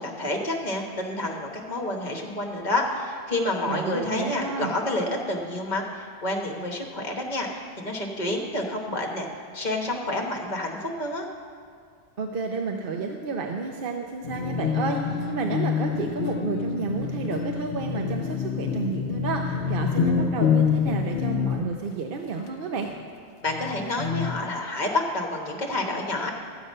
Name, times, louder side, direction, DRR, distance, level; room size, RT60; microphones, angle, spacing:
voice 1, 0.0-9.3 9.5-11.2 23.4-26.3, left 2 dB, 40° left, 1 dB, 1.3 m, -29 dB
voice 2, 3.7-4.7 12.2-22.9, right 4 dB, 55° right, 2 dB, 0.8 m, -31 dB
sound 1, 14.2-21.9 22.9-23.0 23.4-24.4, left 6 dB, 80° left, 0.9 m, -27 dB
13.0 x 7.8 x 5.5 m, 2.1 s
omnidirectional pair, 1.2 m